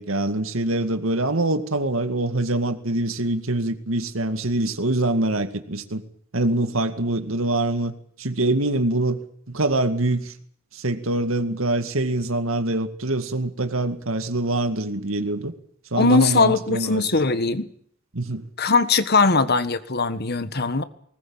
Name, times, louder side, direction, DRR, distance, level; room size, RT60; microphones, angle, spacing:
voice 1, 0.0-6.0 6.3-10.3 10.7-15.5 15.9-17.1 18.1-18.4, right 2 dB, 90° right, 2.2 m, -24 dB
voice 2, 16.0-17.7 18.6-20.8, left 3 dB, 50° left, 1.5 m, -20 dB
20.0 x 19.5 x 8.9 m
head